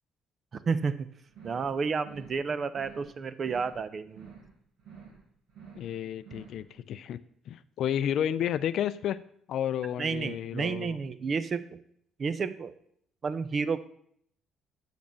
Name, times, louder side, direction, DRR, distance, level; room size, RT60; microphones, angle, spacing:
voice 1, 0.6-1.1 1.4-4.3 10.0-11.8 12.2-12.7 13.2-13.8, right 5 dB, 40° right, 14 dB, 0.6 m, -31 dB
sound 1, 1.3-1.7 2.0-2.4 2.7-3.1 3.4-3.8 4.1-4.5 4.8-5.2 5.5-5.9 6.2-6.6, right 6 dB, 80° right, 4.1 m, -50 dB
voice 2, 5.7-7.2 7.5-9.2 9.5-11.0, left 10 dB, 65° left, 15 dB, 0.4 m, -31 dB
6.1 x 5.2 x 6.8 m, 0.67 s
cardioid pair, 100°, 0 cm